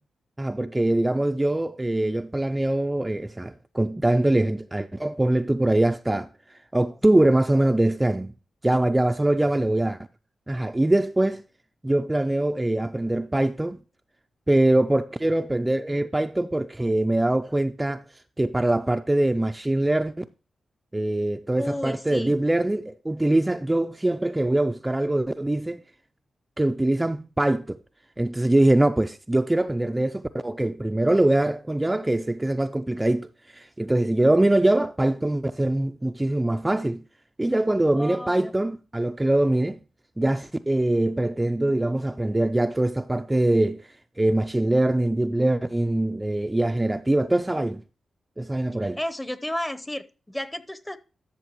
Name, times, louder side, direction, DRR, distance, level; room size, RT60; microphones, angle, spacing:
voice 1, 0.4-8.3 8.6-10.0 10.5-11.4 11.8-13.8 14.5-18.0 18.4-20.2 20.9-25.8 26.6-27.8 28.2-37.0 37.4-39.8 40.2-43.9 44.2-47.8 48.4-49.0, right 1 dB, 15° right, 0.4 m, -23 dB
voice 2, 21.6-22.3 38.0-38.5 49.0-51.0, left 1 dB, 10° left, 0.8 m, -32 dB
12.5 x 6.5 x 3.0 m
cardioid pair, 55°, 0 cm